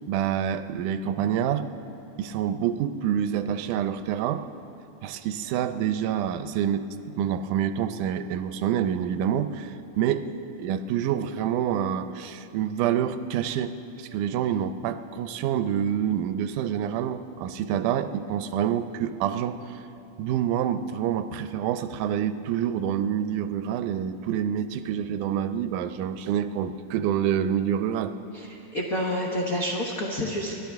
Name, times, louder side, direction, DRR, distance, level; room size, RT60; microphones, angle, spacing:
voice 1, 0.1-1.7 2.2-4.4 5.0-10.3 10.6-19.8 20.2-28.2, right 9 dB, 85° right, 10 dB, 2.1 m, -27 dB
voice 2, 28.3-30.5, equal, 70° left, -2 dB, 0.8 m, -29 dB
28.5 x 12.0 x 3.5 m, 2.9 s
omnidirectional pair, 3.5 m